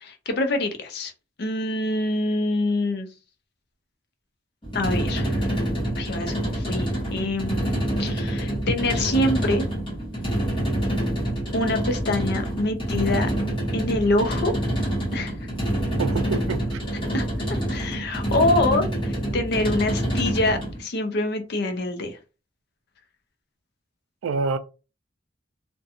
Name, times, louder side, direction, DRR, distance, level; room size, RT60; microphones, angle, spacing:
voice 1, 0.0-1.1 1.4-3.1 4.7-5.5 6.0-9.7 11.5-13.3 13.7-14.5 15.1-15.3 17.1-17.3 17.7-22.2, left 2 dB, 55° left, 0.5 m, -25 dB
sound 1, 4.6-20.8, right 1 dB, 25° left, 1.1 m, -26 dB
voice 2, 16.0-16.8 24.2-24.6, right 4 dB, 85° right, 0.4 m, -27 dB
2.5 x 2.2 x 2.7 m
head